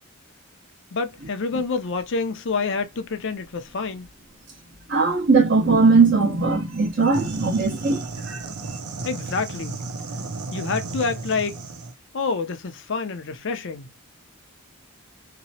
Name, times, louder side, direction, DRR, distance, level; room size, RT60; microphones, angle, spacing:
voice 1, 0.9-4.1 9.0-9.8 10.5-11.6 12.1-13.9, left 4 dB, 60° left, 0.6 m, -27 dB
voice 2, 4.9-8.4, right 4 dB, 55° right, 1.0 m, -19 dB
sound 1, 7.1-11.9, right 3 dB, 90° right, 0.6 m, -33 dB
2.9 x 2.1 x 2.7 m
head